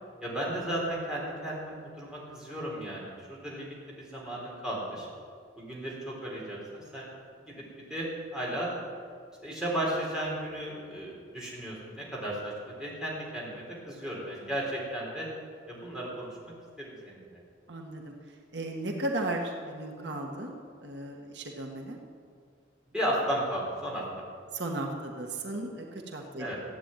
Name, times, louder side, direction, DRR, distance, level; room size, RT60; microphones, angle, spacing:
voice 1, 0.2-5.1 5.6-7.1 7.4-7.6 7.9-8.1 8.3-8.7 9.4-15.3 15.7-17.4 22.9-24.2 26.4-26.6, right 1 dB, 5° right, -5 dB, 4.1 m, -35 dB
voice 2, 17.7-18.1 18.5-20.5 20.8-22.0 24.5-26.5, right 1 dB, 70° right, 1 dB, 1.6 m, -35 dB
15.0 x 9.1 x 9.1 m, 2.2 s
head